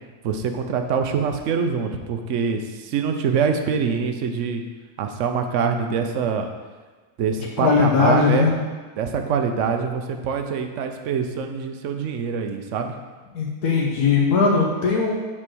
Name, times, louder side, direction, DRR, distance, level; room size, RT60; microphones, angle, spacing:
voice 1, 0.2-4.6 5.0-6.5 7.2-8.5 9.0-12.9, right 6 dB, 60° right, 6 dB, 0.9 m, -24 dB
voice 2, 7.6-8.5 13.3-15.1, left 5 dB, 80° left, -2 dB, 1.5 m, -19 dB
6.1 x 4.5 x 6.1 m, 1.4 s
omnidirectional pair, 1.6 m